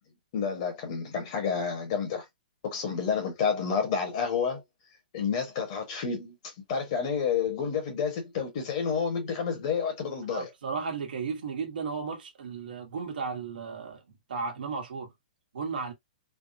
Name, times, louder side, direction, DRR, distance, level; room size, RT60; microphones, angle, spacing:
voice 1, 0.3-2.2 2.6-4.6 5.1-6.3 6.7-10.5, left 6 dB, 40° left, 1.1 m, -29 dB
voice 2, 10.3-14.0 14.3-15.1 15.5-15.9, right 5 dB, 75° right, 1.1 m, -34 dB
3.4 x 2.0 x 2.6 m
hypercardioid pair, 165°, 5 cm